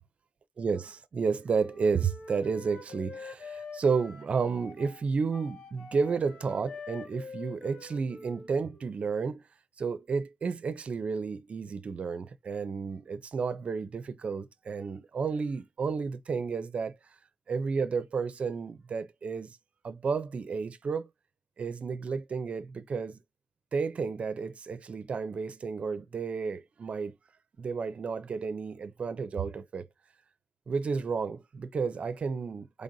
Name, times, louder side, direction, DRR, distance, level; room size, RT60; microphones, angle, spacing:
voice 1, 0.6-9.4 9.8-16.9 17.5-19.6 19.8-21.1 21.6-23.2 23.7-27.1 27.6-29.8 30.7-32.8, right 5 dB, 50° right, 0.6 m, -32 dB
Wind instrument woodwind instrument, 1.5-8.9, left 4 dB, 60° left, 1.5 m, -46 dB
3.8 x 3.3 x 2.7 m
cardioid pair, 95°, 3 cm